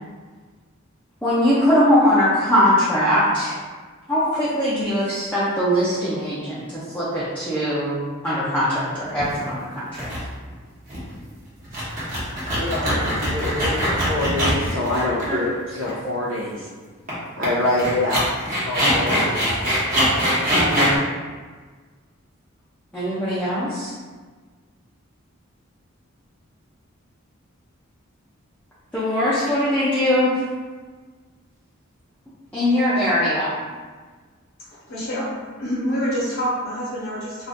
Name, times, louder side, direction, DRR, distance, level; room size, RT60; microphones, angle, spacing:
voice 1, 1.2-3.6 4.1-8.0 8.2-10.1 15.3-15.4 20.5-20.9 22.9-23.9 28.9-30.4 32.5-33.5, equal, 5° left, -11 dB, 0.5 m, -21 dB
sound 1, 9.2-9.5 9.9-10.2 10.5-10.6 10.9-11.1 11.6-15.5 15.8-15.9 17.1-17.2 17.4-17.5 17.8-21.0, equal, 40° right, 1.1 m, -22 dB
voice 2, 12.6-16.7 17.4-18.3 18.7-19.5, left 1 dB, 90° right, -6 dB, 0.6 m, -25 dB
voice 3, 34.7-35.3 35.6-37.5, equal, 65° left, -8 dB, 0.9 m, -26 dB
2.6 x 2.4 x 3.5 m, 1.4 s
head